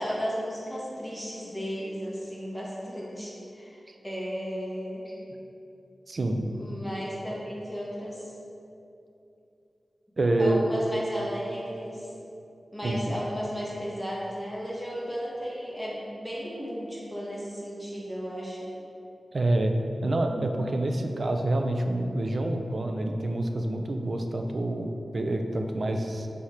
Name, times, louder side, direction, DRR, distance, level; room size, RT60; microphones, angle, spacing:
voice 1, 0.0-5.2 6.5-8.2 10.2-12.1 12.7-18.7 20.3-20.6, equal, ahead, -6 dB, 1.2 m, -34 dB
voice 2, 6.1-6.4 10.2-10.6 12.8-13.0 19.3-19.7 20.0-26.3, right 1 dB, 50° right, 4 dB, 0.5 m, -27 dB
6.3 x 3.5 x 4.3 m, 2.8 s
wide cardioid pair, 90°, 0 cm